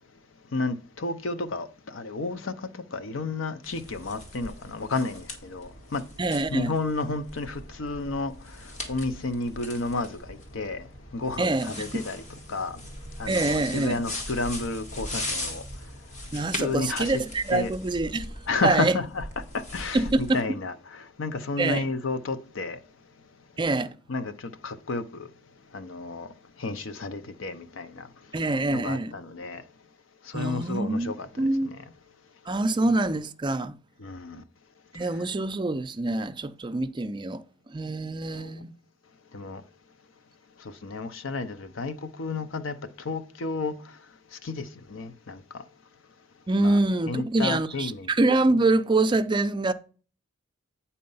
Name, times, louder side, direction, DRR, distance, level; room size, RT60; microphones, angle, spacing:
voice 1, 0.5-6.0 6.5-12.8 13.2-15.6 16.5-17.2 17.5-17.7 18.5-22.8 24.1-25.3 25.7-28.1 28.4-29.6 30.2-31.8 34.0-34.4 35.0-35.1 38.3-38.5 39.3-39.6 40.6-44.0 44.3-45.6 46.6-46.8 47.1-48.1, left 3 dB, 70° left, 0.7 m, -32 dB
sound 1, 3.6-20.4, left 1 dB, 40° left, 1.5 m, -39 dB
voice 2, 6.2-6.7 11.4-11.9 13.3-14.0 16.3-18.3 18.6-19.0 19.9-20.4 21.6-21.8 23.6-23.9 28.3-29.1 30.3-31.7 32.5-33.8 34.9-37.4 37.7-38.7 46.5-49.7, right 2 dB, 25° right, 0.4 m, -25 dB
8.6 x 4.2 x 5.5 m
head